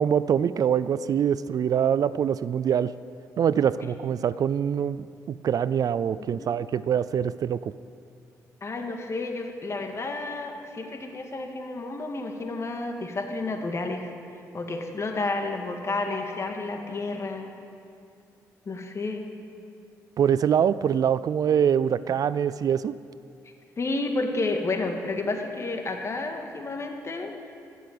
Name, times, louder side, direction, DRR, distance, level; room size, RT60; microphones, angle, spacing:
voice 1, 0.0-2.9 3.4-7.7 20.2-23.0, right 8 dB, 55° right, 17 dB, 0.4 m, -24 dB
voice 2, 8.6-14.1 14.5-17.5 18.7-19.2 23.8-27.5, left 3 dB, 40° left, 4 dB, 2.0 m, -31 dB
15.5 x 7.0 x 8.8 m, 2.4 s
supercardioid pair, 65°, 7 cm